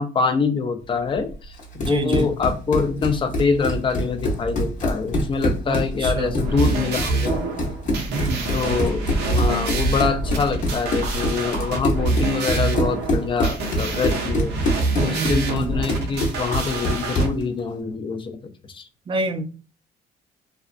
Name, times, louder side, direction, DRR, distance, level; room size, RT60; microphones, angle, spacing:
voice 1, 0.0-7.5 8.5-14.5 15.0-18.4 18.7-18.9, left 5 dB, 30° left, 7 dB, 0.4 m, -25 dB
sound 1, 0.8-16.6, equal, 85° left, 1.2 m, -36 dB
Run, 1.6-17.4, left 1 dB, 45° left, 0.8 m, -25 dB
voice 2, 1.8-2.3 5.7-6.4 8.1-8.5 15.1-15.8 19.1-19.4, right 3 dB, 30° right, 8 dB, 0.4 m, -27 dB
sound 2, 6.3-17.3, right 2 dB, 85° right, 0.6 m, -26 dB
2.6 x 2.1 x 2.4 m, 0.34 s
cardioid pair, 110°, 17 cm